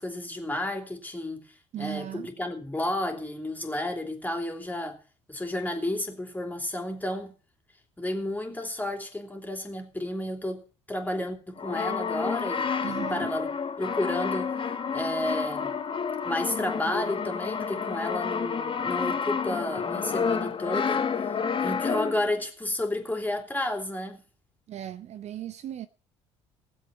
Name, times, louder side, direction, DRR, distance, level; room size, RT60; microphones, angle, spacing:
voice 1, 0.0-5.0 5.3-7.3 8.0-13.5 13.8-14.6 14.9-15.8 16.2-24.2, left 1 dB, 10° left, 3.2 m, -32 dB
voice 2, 1.7-2.3 12.8-13.3 24.7-25.9, right 11 dB, 45° right, 0.8 m, -37 dB
Brass instrument, 11.6-22.4, left 6 dB, 35° left, 1.3 m, -30 dB
18.5 x 7.8 x 5.5 m
figure-of-eight pair, 60°, 16 cm